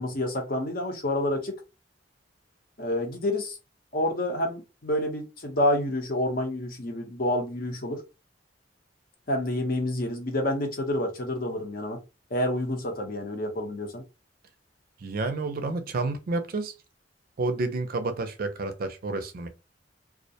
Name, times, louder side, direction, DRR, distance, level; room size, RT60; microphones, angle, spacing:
voice 1, 0.0-1.5 2.8-3.6 3.9-8.0 9.3-12.0 12.3-14.0, left 1 dB, 55° left, 0.8 m, -28 dB
voice 2, 15.0-16.7 17.4-19.5, right 3 dB, 55° right, 0.4 m, -30 dB
2.3 x 2.1 x 2.7 m
head